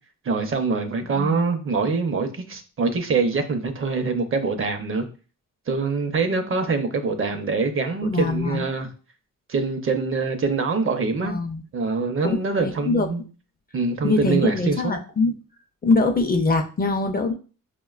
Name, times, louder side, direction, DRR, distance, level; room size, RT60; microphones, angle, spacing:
voice 1, 0.3-5.1 5.7-8.9 9.5-11.4 11.7-13.2 13.7-15.0, right 4 dB, 40° right, 7 dB, 0.6 m, -24 dB
voice 2, 8.0-8.6 11.2-11.6 12.2-13.1 14.0-15.3 15.8-17.3, left 3 dB, 30° left, 5 dB, 0.4 m, -23 dB
4.7 x 2.2 x 2.3 m, 0.37 s
cardioid pair, 80°, 33 cm